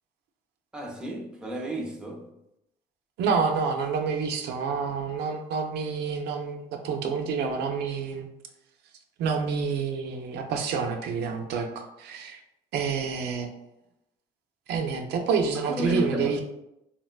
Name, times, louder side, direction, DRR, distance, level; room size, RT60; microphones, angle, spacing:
voice 1, 0.7-2.3 15.5-16.4, equal, 5° right, -1 dB, 0.5 m, -32 dB
voice 2, 3.2-8.3 9.2-12.4 12.7-13.5 14.7-16.4, right 5 dB, 75° right, 4 dB, 0.4 m, -28 dB
3.8 x 2.1 x 2.2 m, 0.84 s
cardioid pair, 110°, 17 cm